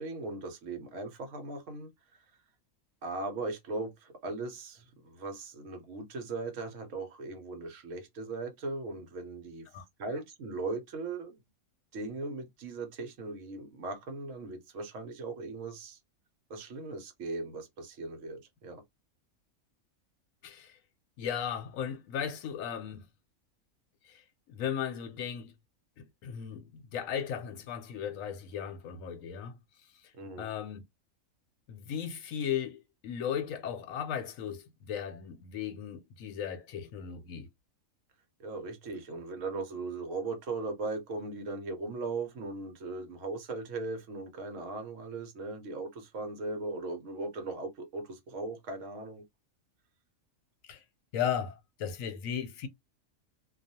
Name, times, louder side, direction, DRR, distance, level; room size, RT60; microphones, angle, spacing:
voice 1, 0.0-1.9 3.0-9.7 10.0-11.4 11.9-16.0 16.5-18.8 30.2-30.5 38.4-49.2, right 3 dB, 65° right, 1.0 m, -38 dB
voice 2, 20.4-20.8 21.2-23.0 24.0-25.5 26.0-29.6 30.0-30.1 30.4-30.8 31.7-37.5 50.6-50.8 51.1-52.7, left 8 dB, 75° left, 1.0 m, -36 dB
2.3 x 2.3 x 2.7 m
omnidirectional pair, 1.4 m